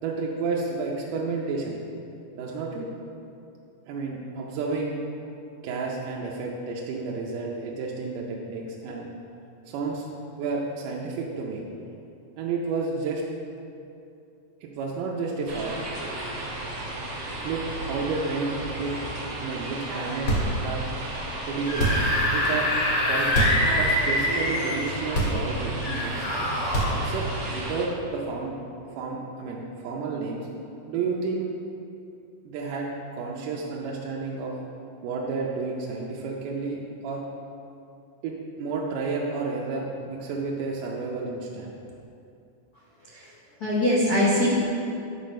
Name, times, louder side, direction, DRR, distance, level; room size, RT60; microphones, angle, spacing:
voice 1, 0.0-1.8 2.4-2.9 3.9-5.0 5.6-9.1 9.7-10.1 10.4-11.6 12.4-13.2 14.6-15.8 17.4-19.0 19.4-20.3 20.6-20.8 21.4-21.9 22.3-22.7 23.1-26.4 26.9-27.3 27.5-28.5 28.9-30.5 30.9-31.5 32.5-34.5 35.0-36.8 37.0-37.2 38.2-41.7, right 4 dB, 80° right, -2 dB, 2.2 m, -31 dB
sound 1, 15.5-27.9, right 1 dB, 60° right, 1.1 m, -34 dB
sound 2, 20.1-20.9 21.7-22.3 23.2-23.7 24.1-24.2 25.1-25.7 26.6-27.3, right 1 dB, 40° left, 2.0 m, -26 dB
Screaming / Screech, 21.5-24.9 25.8-26.9, left 1 dB, 55° left, 1.3 m, -25 dB
voice 2, 43.6-44.5, left 1 dB, 85° left, -7 dB, 0.8 m, -22 dB
9.4 x 4.1 x 5.2 m, 2.6 s
omnidirectional pair, 3.7 m